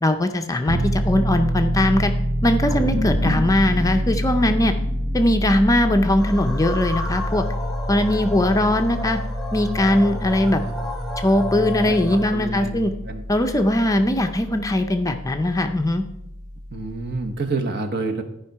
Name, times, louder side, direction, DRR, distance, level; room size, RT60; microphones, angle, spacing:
voice 1, 0.0-2.1 2.4-4.7 5.1-7.4 7.9-9.2 9.5-10.6 11.2-12.9 13.3-16.0, left 1 dB, 15° left, 6 dB, 0.5 m, -20 dB
Piano, 0.7-17.3, equal, 85° right, 1.4 m, -27 dB
sound 1, 2.7-7.4, left 1 dB, 20° right, 1.5 m, -32 dB
sound 2, 6.2-12.4, left 1 dB, ahead, 1.2 m, -31 dB
voice 2, 11.6-12.0 12.3-13.2 13.9-14.0 16.7-18.2, right 3 dB, 50° right, 5 dB, 1.1 m, -29 dB
13.5 x 5.1 x 4.7 m, 0.81 s
head